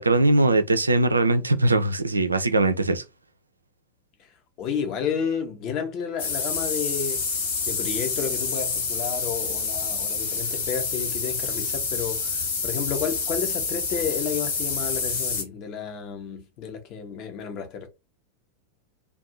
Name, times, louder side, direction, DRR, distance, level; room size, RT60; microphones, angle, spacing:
voice 1, 0.0-3.0, right 2 dB, 80° right, 0.4 m, -21 dB
voice 2, 4.6-7.2 7.7-17.9, left 7 dB, 40° left, 0.9 m, -31 dB
sound 1, 6.2-15.4, left 4 dB, 55° left, 1.2 m, -28 dB
2.6 x 2.3 x 3.9 m
figure-of-eight pair, 90°, 0 cm